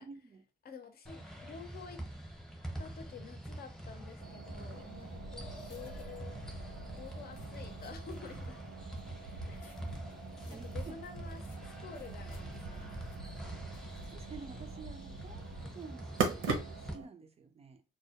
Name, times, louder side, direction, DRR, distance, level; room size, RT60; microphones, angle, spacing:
voice 1, 0.0-0.4 5.3-5.4 10.5-10.9 13.5-13.6 14.1-17.8, right 4 dB, 30° right, 0.4 m, -50 dB
voice 2, 0.6-2.0 2.8-6.4 6.9-8.6 9.5-9.9 10.6-12.9, left 6 dB, 50° left, 0.6 m, -49 dB
sound 1, 1.1-16.9, right 1 dB, ahead, 0.7 m, -45 dB
sound 2, 3.7-14.2, left 1 dB, 90° left, 0.7 m, -54 dB
sound 3, 4.2-17.0, right 5 dB, 85° right, 0.6 m, -42 dB
2.1 x 2.1 x 2.8 m
cardioid pair, 90°, 20 cm